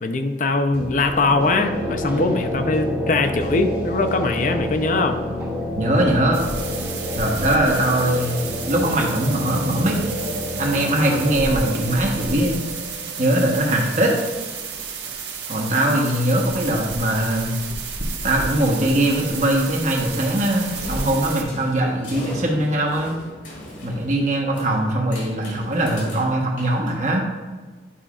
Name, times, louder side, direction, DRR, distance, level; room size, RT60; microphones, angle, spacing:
voice 1, 0.0-5.2, left 3 dB, 45° left, 7 dB, 0.5 m, -21 dB
sound 1, 0.7-14.4, left 1 dB, 15° right, 1.2 m, -29 dB
voice 2, 5.7-6.4 7.1-10.0 10.6-12.6 13.2-14.1 15.5-17.5 18.2-23.2 23.8-27.3, right 1 dB, 40° right, 0 dB, 1.2 m, -21 dB
sound 2, 6.3-21.4, right 4 dB, 65° right, 1.2 m, -32 dB
sound 3, 20.6-27.3, left 1 dB, 90° left, 2.2 m, -38 dB
10.0 x 5.6 x 2.4 m, 1.4 s
head